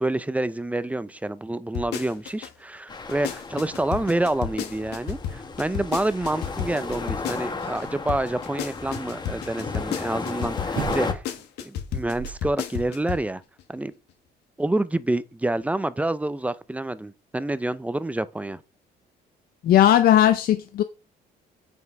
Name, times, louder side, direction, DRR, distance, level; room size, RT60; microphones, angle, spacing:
voice 1, 0.0-11.2 11.6-13.4 13.7-13.9 14.6-18.6, right 1 dB, 10° right, 0.5 m, -27 dB
sound 1, 1.7-2.5 2.9-7.8 8.1-13.3 13.6-13.7, left 9 dB, 80° left, 1.5 m, -32 dB
sound 2, 2.9-11.1, left 4 dB, 25° left, 1.4 m, -34 dB
sound 3, 10.7-11.4 11.9-12.7 13.0-13.1, right 10 dB, 55° right, 0.9 m, -35 dB
voice 2, 19.6-20.8, left 11 dB, 60° left, 0.6 m, -17 dB
8.0 x 5.3 x 4.8 m
cardioid pair, 110°, 17 cm